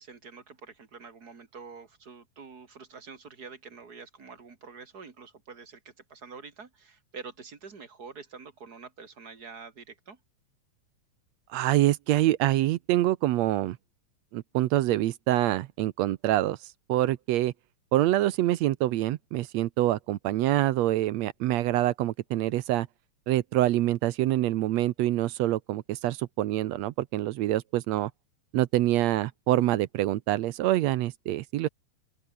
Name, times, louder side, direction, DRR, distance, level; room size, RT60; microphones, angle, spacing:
voice 1, 0.0-10.2, right 5 dB, 30° right, 2.8 m, -46 dB
voice 2, 11.5-13.8 14.3-16.6 16.9-17.5 17.9-22.9 23.3-28.1 28.5-31.7, right 15 dB, 70° right, 1.7 m, -25 dB
open air
omnidirectional pair, 3.6 m